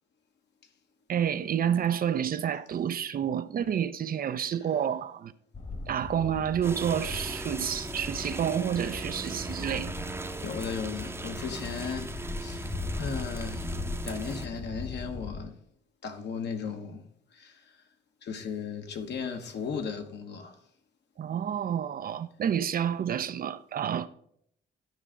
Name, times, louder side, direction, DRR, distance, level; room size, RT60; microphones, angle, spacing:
voice 1, 1.1-5.3 5.9-10.1 21.2-24.1, right 9 dB, 45° right, 0.5 m, -29 dB
sound 1, 5.5-15.4, left 3 dB, 35° left, 1.3 m, -39 dB
sound 2, 6.6-14.5, right 2 dB, 10° right, 0.7 m, -39 dB
voice 2, 10.4-15.6 16.0-17.8 18.2-20.6, left 6 dB, 60° left, 1.2 m, -36 dB
12.0 x 4.9 x 3.7 m
cardioid pair, 90°, 20 cm